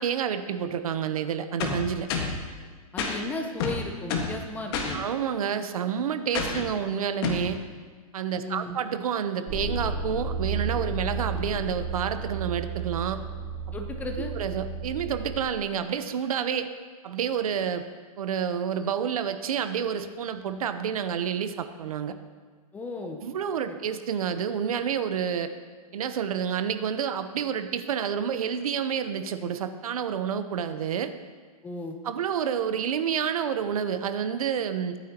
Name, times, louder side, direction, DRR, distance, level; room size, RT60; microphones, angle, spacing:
voice 1, 0.0-2.1 4.9-7.6 8.1-13.2 14.2-16.7 17.0-17.8 18.2-22.2 23.2-25.5 25.9-31.1 32.0-35.0, right 8 dB, 65° right, 10 dB, 1.0 m, -29 dB
sound 1, 1.6-2.4 3.0-3.2 3.6-4.4 4.7-5.0 6.3-6.7 7.2-7.5, left 5 dB, 40° left, 1.7 m, -28 dB
voice 2, 2.9-5.1 8.4-8.8 13.7-14.3 22.7-23.2 23.7-23.8 31.6-32.0, left 2 dB, 10° left, 4 dB, 0.7 m, -35 dB
sound 2, 9.5-15.4, right 4 dB, 15° right, 1.8 m, -32 dB
22.0 x 9.3 x 3.0 m, 1.5 s
hypercardioid pair, 155°, 20 cm